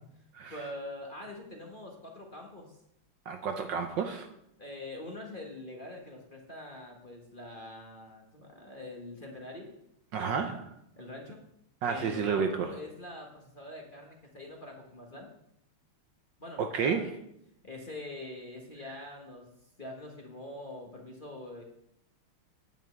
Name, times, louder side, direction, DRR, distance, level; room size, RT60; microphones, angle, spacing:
voice 1, 0.5-2.8 4.6-9.7 10.2-10.5 11.0-11.4 11.8-15.3 16.4-17.0 17.6-19.5 19.8-21.6, left 1 dB, 25° left, 0 dB, 1.4 m, -44 dB
voice 2, 3.3-4.3 10.1-10.6 11.8-12.7 16.6-17.1, right 6 dB, 65° right, 6 dB, 1.3 m, -30 dB
9.2 x 5.8 x 8.3 m, 0.77 s
omnidirectional pair, 2.4 m